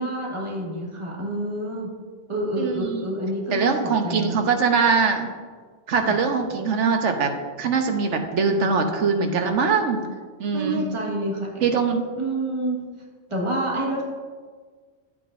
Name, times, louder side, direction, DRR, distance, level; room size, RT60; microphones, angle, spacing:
voice 1, 0.0-1.9 2.3-4.4 5.9-6.2 10.5-11.7 12.1-12.8 13.3-14.0, right 1 dB, 25° right, -2 dB, 1.6 m, -28 dB
voice 2, 2.6-3.0 3.5-5.3 5.9-7.3 7.6-10.0 10.4-10.8 11.6-12.0, right 5 dB, 90° right, 5 dB, 1.2 m, -22 dB
10.5 x 8.4 x 2.6 m, 1.5 s
omnidirectional pair, 1.2 m